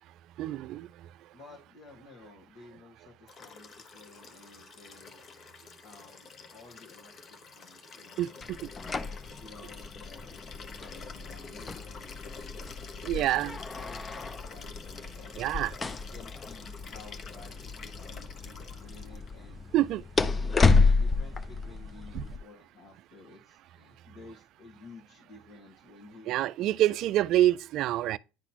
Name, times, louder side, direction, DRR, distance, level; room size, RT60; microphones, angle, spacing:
voice 1, 0.4-0.9 8.2-8.3 13.0-13.5 15.4-15.7 19.7-20.0 22.1-22.2 26.3-28.2, right 14 dB, 60° right, 0.3 m, -26 dB
voice 2, 1.3-5.2 5.8-9.0 9.4-12.7 13.2-13.4 13.7-15.4 15.9-19.7 20.2-26.7 26.9-27.1, left 3 dB, 60° left, 1.8 m, -53 dB
Liquid, 3.3-19.3 20.6-20.7, left 5 dB, 40° left, 0.9 m, -48 dB
Conference room door, 8.4-22.4, left 4 dB, 25° left, 0.5 m, -31 dB
10.5 x 4.0 x 2.9 m
supercardioid pair, 90°, 0 cm